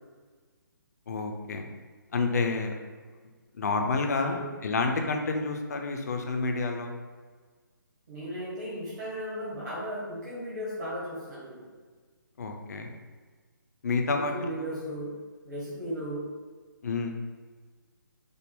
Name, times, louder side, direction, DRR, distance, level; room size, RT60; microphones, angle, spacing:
voice 1, 1.1-1.7 2.1-2.7 3.6-6.9 12.4-12.9 13.8-14.7 16.8-17.1, left 3 dB, 50° left, 4 dB, 0.5 m, -29 dB
voice 2, 8.1-11.7 14.1-15.1 15.4-16.2, equal, 55° right, -9 dB, 1.5 m, -36 dB
5.1 x 2.1 x 3.4 m, 1.5 s
figure-of-eight pair, 140°, 11 cm